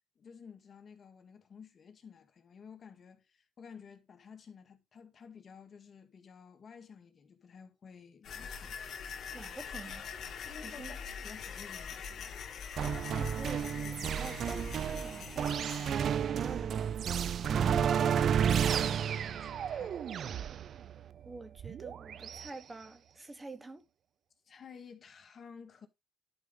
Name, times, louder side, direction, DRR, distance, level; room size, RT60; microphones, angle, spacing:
voice 1, 0.2-8.8 10.4-12.4 17.4-20.4 24.5-25.9, left 6 dB, 50° left, 2.0 m, -52 dB
sound 1, 8.2-15.9, left 6 dB, 65° left, 1.8 m, -43 dB
voice 2, 9.3-10.1 10.6-11.0 12.8-17.1 21.2-23.8, right 3 dB, 20° right, 1.3 m, -47 dB
sound 2, 12.8-22.5, right 8 dB, 60° right, 0.5 m, -32 dB
11.5 x 5.2 x 3.9 m
cardioid pair, 90°, 0 cm